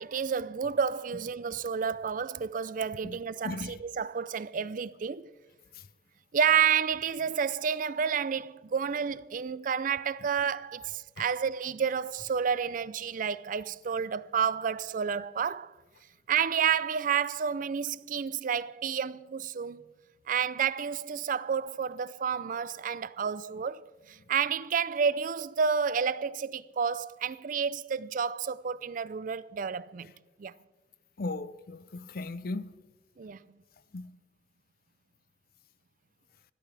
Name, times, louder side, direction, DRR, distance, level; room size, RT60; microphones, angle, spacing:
voice 1, 0.0-5.3 6.3-15.7 16.3-19.8 20.3-30.1 30.4-30.5 33.2-33.4, right 7 dB, 45° right, 0.4 m, -30 dB
voice 2, 3.4-3.8 5.7-5.9 11.2-11.3 31.2-32.8 33.9-34.2, left 2 dB, 55° left, 0.6 m, -37 dB
25.5 x 12.5 x 3.3 m
head